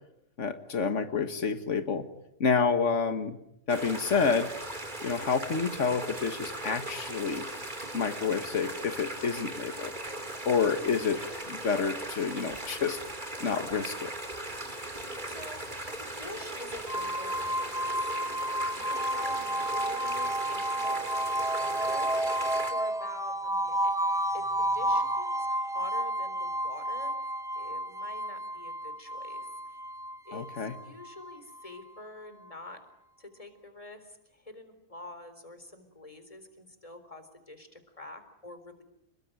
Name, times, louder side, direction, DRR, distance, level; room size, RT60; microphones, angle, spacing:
voice 1, 0.4-2.1 2.4-3.4 3.7-4.5 5.0-7.5 7.9-9.9 10.5-11.2 11.5-13.0 13.4-14.1 30.3-30.8, left 5 dB, 85° left, 9 dB, 1.9 m, -28 dB
sound 1, 3.7-22.7, right 1 dB, 40° right, 3.5 m, -39 dB
voice 2, 15.3-23.9 24.3-29.8 30.3-32.8 33.2-38.8, left 1 dB, 30° left, 9 dB, 4.1 m, -47 dB
sound 2, 16.9-31.8, right 1 dB, 5° right, 2.0 m, -31 dB
30.0 x 21.0 x 9.1 m, 0.80 s
omnidirectional pair, 1.2 m